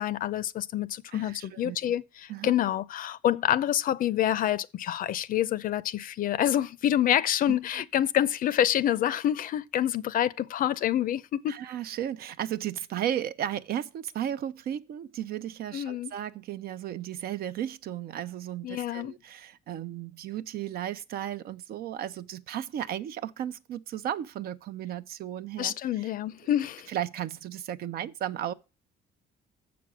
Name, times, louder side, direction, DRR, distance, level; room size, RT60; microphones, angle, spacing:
voice 1, 0.0-11.6 15.7-16.1 18.6-19.1 25.6-26.9, left 11 dB, 55° left, 0.6 m, -27 dB
voice 2, 1.1-1.8 2.3-2.5 11.5-26.1 26.9-28.5, right 11 dB, 65° right, 0.6 m, -35 dB
7.1 x 6.1 x 6.2 m
cardioid pair, 110°, 17 cm